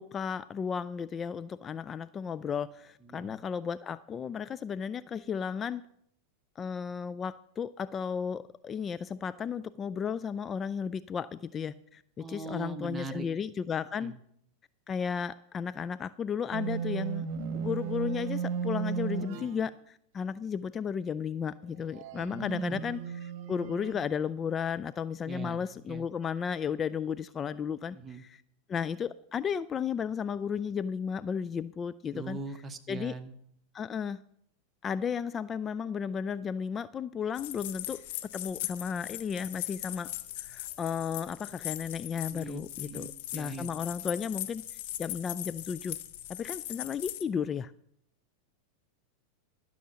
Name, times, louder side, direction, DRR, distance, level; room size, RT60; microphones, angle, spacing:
voice 1, 0.0-5.9 6.6-14.2 14.9-17.3 17.5-28.4 28.7-32.4 32.9-33.1 33.7-34.2 34.8-38.0 38.3-40.1 40.4-43.1 43.3-46.0 46.3-47.7, left 7 dB, 30° left, 15 dB, 0.4 m, -34 dB
voice 2, 12.2-13.3 14.0-14.1 22.3-22.8 25.2-26.0 27.9-28.2 32.1-33.3 42.3-43.7, right 3 dB, 20° right, 7 dB, 1.3 m, -41 dB
sound 1, 16.5-19.6 21.9-23.9, right 7 dB, 55° right, 1.3 m, -35 dB
sound 2, 37.4-47.2, left 14 dB, 60° left, 0.9 m, -40 dB
13.5 x 6.3 x 7.0 m, 0.70 s
hypercardioid pair, 100°, 0 cm